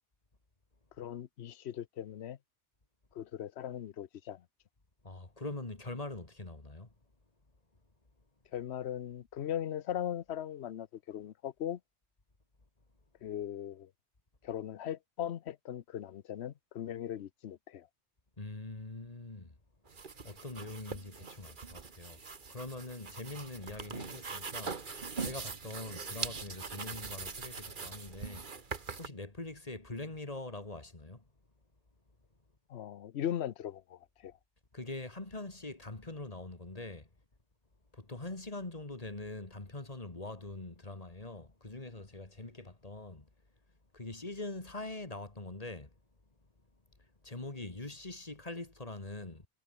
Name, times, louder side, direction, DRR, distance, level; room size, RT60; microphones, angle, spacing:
voice 1, 1.0-2.4 3.1-4.4 8.5-11.8 13.2-13.9 14.4-17.9 32.7-34.3, left 10 dB, 65° left, 1.0 m, -39 dB
voice 2, 5.0-6.9 18.4-19.5 20.2-22.2 22.5-24.8 25.2-28.5 29.0-31.2 34.7-37.1 37.9-43.3 43.9-45.9 47.2-49.5, left 2 dB, 30° left, 2.5 m, -43 dB
sound 1, 19.9-29.1, right 4 dB, 45° right, 1.5 m, -42 dB
omnidirectional pair, 1.2 m